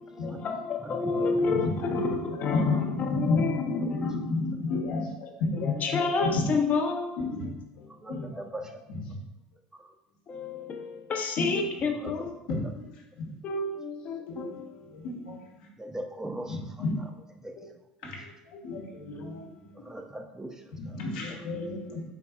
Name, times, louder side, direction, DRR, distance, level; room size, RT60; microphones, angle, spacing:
voice 1, 0.0-4.3 5.6-7.6 8.1-8.3 10.3-12.3 13.4-14.9 17.6-17.7 18.6-18.8 19.1-19.2 21.3-21.4, left 4 dB, 40° left, 3 dB, 0.5 m, -30 dB
voice 2, 0.8-1.4 7.9-8.7 9.8-9.9 12.0-12.3 12.6-12.7 15.8-16.6 17.0-17.1 17.4-17.5 18.0-18.1 19.7-21.0 21.3-21.4 21.7-21.9, right 1 dB, 15° right, 4 dB, 0.4 m, -40 dB
voice 3, 1.4-2.0 2.4-5.1 5.5-6.4 7.2-7.5 7.8-8.4 8.9-9.2 10.5-10.6 11.4-11.5 12.5-12.9 13.2-13.3 14.3-14.5 14.9-15.4 16.4-17.0 18.0-19.5 20.8-22.0, left 2 dB, 75° left, -1 dB, 0.9 m, -32 dB
4.1 x 3.4 x 2.3 m, 0.93 s
hypercardioid pair, 75°, 4 cm